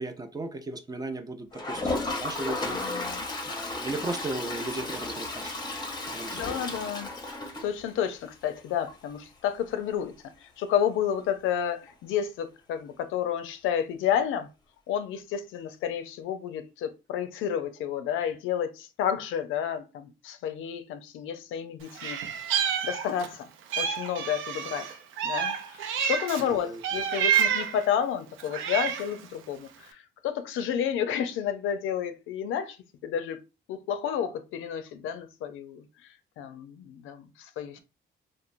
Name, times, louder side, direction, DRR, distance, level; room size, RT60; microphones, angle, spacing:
voice 1, 0.0-2.8 3.5-5.5 6.0-6.7 26.5-26.8, right 2 dB, 20° right, 0.4 m, -36 dB
Toilet flush, 1.5-8.2 8.6-8.7 8.9-9.0 9.2-9.3 11.9-12.0 13.3-13.4, left 2 dB, 20° left, 0.7 m, -34 dB
voice 2, 2.7-3.3 6.3-7.1 7.6-10.1 10.4-14.5 14.9-22.2 22.8-23.5 23.8-24.9 25.2-32.8 33.0-33.4 33.7-35.8 36.4-37.8, left 9 dB, 90° left, 0.5 m, -31 dB
Meow, 22.0-23.3 23.7-26.5 26.8-27.8 28.4-29.2, right 8 dB, 80° right, 0.4 m, -28 dB
3.0 x 2.0 x 2.4 m
cardioid pair, 90°, 20 cm